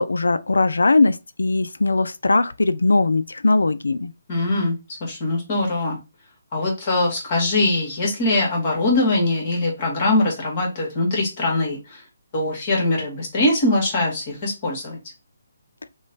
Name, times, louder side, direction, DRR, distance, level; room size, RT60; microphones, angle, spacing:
voice 1, 0.0-4.1, left 3 dB, 85° left, 0.4 m, -19 dB
voice 2, 4.3-4.8 5.0-6.0 6.5-12.0 12.3-15.0, left 2 dB, 40° left, 1.6 m, -22 dB
3.1 x 2.2 x 4.0 m
hypercardioid pair, 150°, 0 cm